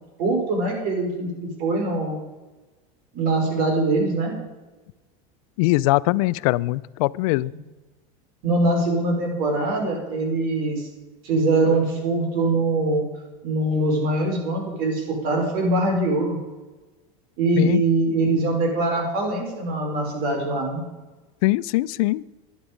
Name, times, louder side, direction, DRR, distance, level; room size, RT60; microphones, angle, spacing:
voice 1, 0.2-2.1 3.1-4.3 8.4-10.9 11.2-13.0 13.4-16.4 17.4-20.8, right 2 dB, 55° right, 2 dB, 4.5 m, -23 dB
voice 2, 5.6-7.5 17.6-17.8 21.4-22.2, left 20 dB, 70° left, 20 dB, 0.5 m, -21 dB
11.0 x 11.0 x 5.1 m, 1.2 s
supercardioid pair, 135°, 19 cm